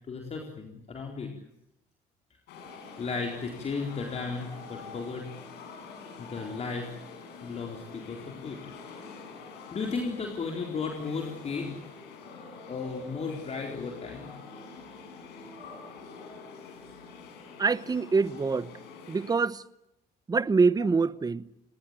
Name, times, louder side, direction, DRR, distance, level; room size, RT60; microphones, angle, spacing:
voice 1, 0.1-1.3 3.0-5.3 6.2-6.9 7.4-8.6 9.7-11.8 12.7-14.3, left 4 dB, 40° left, 4.2 m, -34 dB
sound 1, 2.5-19.3, left 4 dB, 80° left, 7.3 m, -46 dB
voice 2, 17.6-18.7 19.1-19.6 20.3-21.5, right 4 dB, 20° right, 1.1 m, -25 dB
29.5 x 19.5 x 8.9 m
cardioid pair, 110°, 17 cm